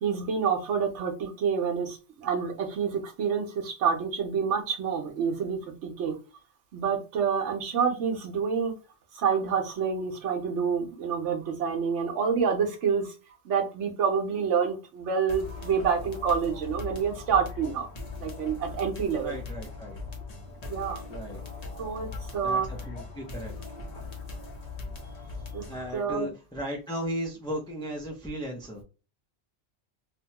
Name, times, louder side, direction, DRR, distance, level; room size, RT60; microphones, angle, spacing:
voice 1, 0.0-6.2 6.7-8.7 9.1-13.1 13.4-17.9 18.2-19.4 20.6-21.0 21.8-22.7 25.5-25.6 25.9-26.3, right 6 dB, 80° right, 3 dB, 1.1 m, -28 dB
sound 1, 15.3-26.0, left 3 dB, 45° left, 0.6 m, -40 dB
voice 2, 19.1-20.0 21.1-21.4 22.4-23.5 25.6-28.8, equal, 5° left, -2 dB, 0.3 m, -36 dB
2.9 x 2.2 x 2.8 m, 0.32 s
omnidirectional pair, 1.2 m